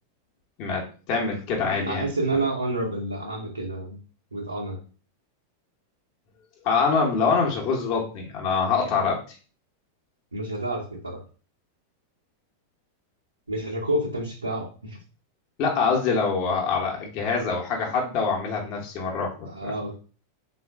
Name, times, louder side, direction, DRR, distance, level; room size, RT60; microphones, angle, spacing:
voice 1, 0.6-2.4 6.6-9.2 15.6-19.7, left 5 dB, 40° left, -1 dB, 1.0 m, -25 dB
voice 2, 1.9-4.0 4.3-4.8 10.3-11.2 13.5-15.0 19.5-19.9, right 1 dB, 80° right, -3 dB, 0.7 m, -29 dB
3.8 x 2.5 x 3.4 m, 0.38 s
figure-of-eight pair, 90°, 0 cm